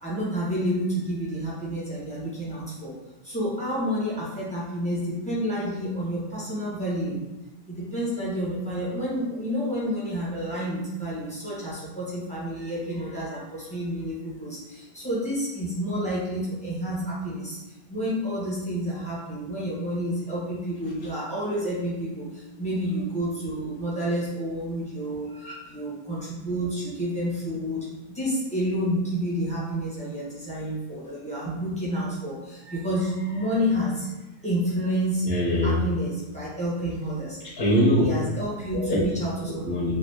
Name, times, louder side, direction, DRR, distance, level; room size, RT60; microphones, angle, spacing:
voice 1, 0.0-2.9 3.2-7.2 7.7-17.6 17.9-34.1 34.4-35.3 35.6-37.4 38.0-39.9, equal, 5° left, -8 dB, 0.9 m, -29 dB
voice 2, 35.2-36.0 37.4-38.0 38.7-39.1 39.5-40.0, equal, 50° left, -7 dB, 1.0 m, -23 dB
3.3 x 2.6 x 2.8 m, 1.0 s
omnidirectional pair, 1.5 m